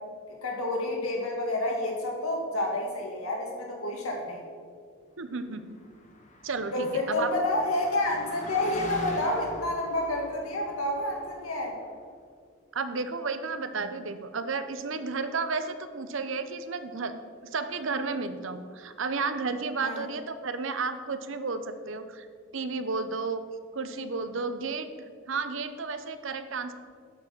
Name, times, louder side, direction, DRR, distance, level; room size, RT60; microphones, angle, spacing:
voice 1, 0.3-4.4 6.7-11.7 19.8-20.0, left 1 dB, 90° left, 0 dB, 2.2 m, -29 dB
voice 2, 5.2-5.8 6.4-7.3 12.7-17.1 17.5-22.3 22.5-23.4 23.7-24.9 25.3-26.7, right 4 dB, 65° right, 10 dB, 0.7 m, -32 dB
Car passing by, 5.7-11.7, left 1 dB, 35° left, 1.1 m, -43 dB
11.0 x 6.2 x 6.0 m, 2.1 s
head